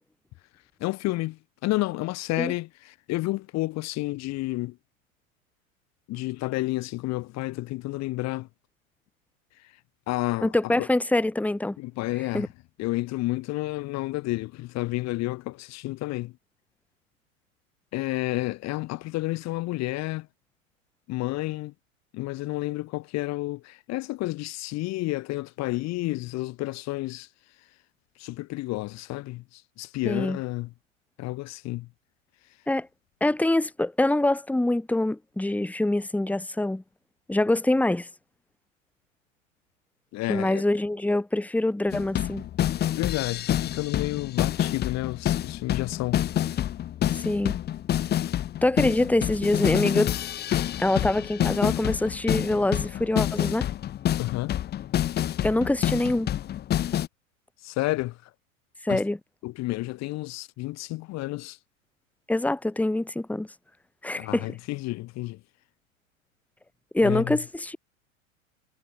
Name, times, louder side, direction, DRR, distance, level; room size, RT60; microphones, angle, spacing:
voice 1, 0.8-4.8 6.1-8.5 10.1-10.9 11.8-12.5 12.8-16.3 17.9-20.3 21.1-21.7 22.1-27.3 28.2-30.7 31.2-31.9 40.1-40.6 42.9-46.2 54.2-54.6 57.6-58.2 58.9-59.0 59.4-61.6 64.2-65.4 67.0-67.4, left 19 dB, 40° left, 2.4 m, -30 dB
voice 2, 10.4-11.8 12.3-12.5 30.0-30.4 32.7-32.9 33.2-36.8 37.3-38.1 40.3-42.5 47.2-47.6 48.6-50.1 50.8-53.7 55.4-56.3 58.8-59.2 62.3-63.5 64.0-64.5 66.9-67.8, left 1 dB, 5° left, 2.6 m, -25 dB
sound 1, 41.9-57.1, left 11 dB, 25° left, 1.0 m, -28 dB
figure-of-eight pair, 90°, 42 cm